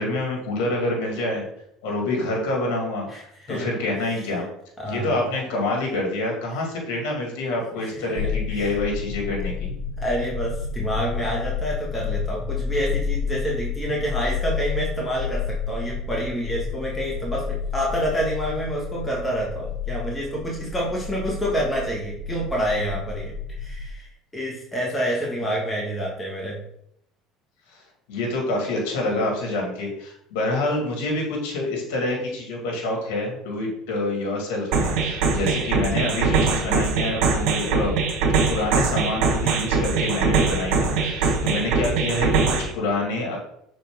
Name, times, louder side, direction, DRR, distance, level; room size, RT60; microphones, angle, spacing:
voice 1, 0.0-1.4 1.8-3.1 3.5-4.4 4.8-9.7 27.7-27.8 28.1-38.0 38.5-43.4, left 2 dB, 80° left, 0 dB, 2.0 m, -27 dB
voice 2, 3.1-3.7 4.0-4.2 4.8-5.2 7.7-8.2 8.5-8.8 10.0-26.6, equal, 15° left, -4 dB, 1.7 m, -28 dB
sound 1, 8.2-23.9, left 5 dB, 60° left, 0.5 m, -30 dB
sound 2, 34.7-42.7, right 4 dB, 70° right, 1.4 m, -22 dB
6.2 x 4.2 x 3.7 m, 0.72 s
supercardioid pair, 95°, 0 cm